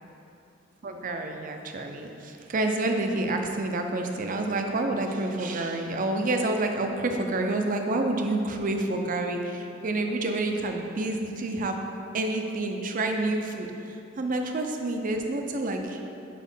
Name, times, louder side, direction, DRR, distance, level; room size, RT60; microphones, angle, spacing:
voice 1, 0.8-11.8 12.1-16.0, right 2 dB, 45° right, 4 dB, 0.5 m, -28 dB
4.9 x 4.2 x 5.4 m, 2.8 s
head